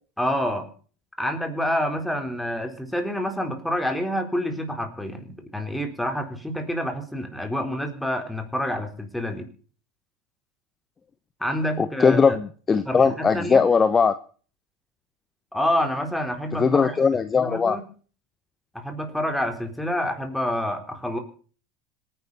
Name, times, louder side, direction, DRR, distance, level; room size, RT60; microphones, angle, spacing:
voice 1, 0.2-0.7 1.2-9.5 11.4-12.4 12.9-13.7 15.5-17.0 17.3-17.8 18.7-21.2, equal, 5° left, 4 dB, 4.0 m, -28 dB
voice 2, 11.8-14.1 16.6-17.8, left 5 dB, 25° left, 12 dB, 1.0 m, -19 dB
26.0 x 10.5 x 4.2 m, 0.41 s
hypercardioid pair, 85°, 0 cm